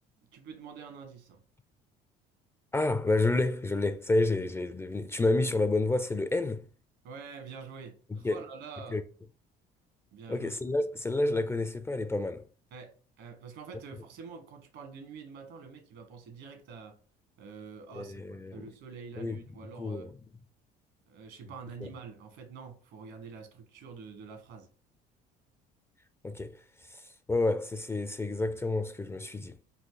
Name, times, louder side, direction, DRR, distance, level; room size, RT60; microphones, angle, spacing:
voice 1, 0.3-1.4 7.0-9.0 10.1-10.5 12.7-12.9 13.2-16.9 17.4-20.1 21.1-24.7, right 5 dB, 75° right, 1.5 m, -46 dB
voice 2, 2.7-6.6 8.1-8.4 8.9-9.0 10.3-12.5 17.9-18.7 19.2-19.4 19.8-20.1 21.8-21.9 26.2-26.6 26.9-27.0 27.3-29.6, left 2 dB, 15° left, 0.4 m, -29 dB
4.2 x 2.6 x 3.8 m
supercardioid pair, 85°, 19 cm